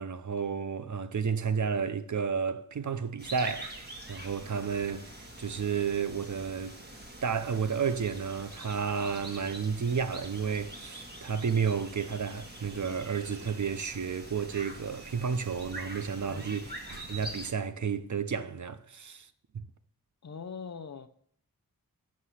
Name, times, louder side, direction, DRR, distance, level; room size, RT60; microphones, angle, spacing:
voice 1, 0.0-6.8 7.2-16.7 17.1-19.3 19.5-19.6, right 6 dB, 55° right, 0.6 m, -32 dB
sound 1, 3.2-17.5, right 1 dB, 30° right, 1.5 m, -45 dB
sound 2, 12.5-18.3, right 4 dB, 80° right, 1.5 m, -57 dB
voice 2, 16.3-16.7 20.2-21.1, left 5 dB, 50° left, 0.6 m, -42 dB
6.4 x 6.1 x 5.7 m
wide cardioid pair, 85°, 35 cm